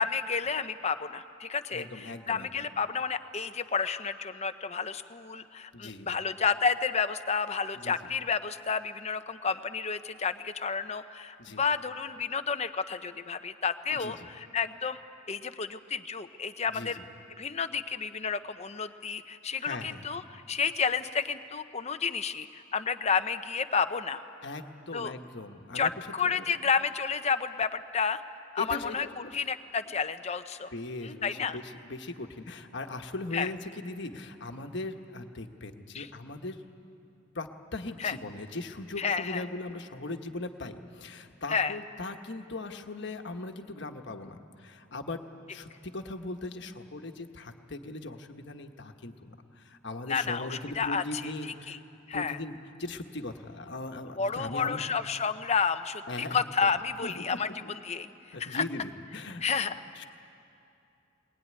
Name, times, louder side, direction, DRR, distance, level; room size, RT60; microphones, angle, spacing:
voice 1, 0.0-15.0 15.3-17.0 17.4-24.2 24.9-25.1 25.7-28.2 28.5-30.7 31.0-31.6 33.3-33.5 35.9-36.1 38.0-38.2 39.0-39.4 41.5-41.8 50.1-51.8 52.1-52.4 54.2-58.6 59.4-59.8, left 5 dB, 35° left, 10 dB, 0.8 m, -31 dB
voice 2, 1.7-2.5 5.7-6.1 7.7-7.9 11.4-11.6 13.9-14.3 16.7-17.0 19.6-20.0 24.4-26.4 28.6-29.4 30.7-36.6 37.3-51.8 52.1-54.8 56.1-56.7 57.0-57.7 58.3-59.4 60.0-60.1, left 2 dB, 60° left, 5 dB, 1.4 m, -39 dB
22.0 x 20.5 x 9.7 m, 2.6 s
head